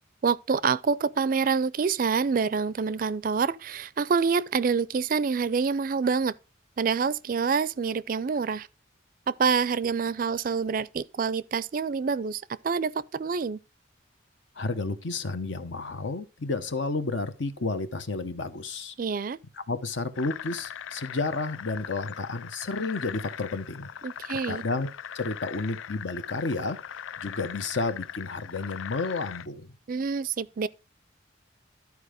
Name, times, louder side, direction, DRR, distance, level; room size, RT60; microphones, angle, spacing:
voice 1, 0.2-6.3 6.8-8.7 9.3-13.6 19.0-19.4 24.0-24.6 29.9-30.7, right 5 dB, 45° right, 0.4 m, -27 dB
voice 2, 14.6-18.9 19.7-23.9 24.5-26.8 27.2-29.7, left 3 dB, 70° left, 1.0 m, -31 dB
sound 1, 20.1-29.5, left 9 dB, 90° left, 0.4 m, -40 dB
12.5 x 4.7 x 5.0 m
head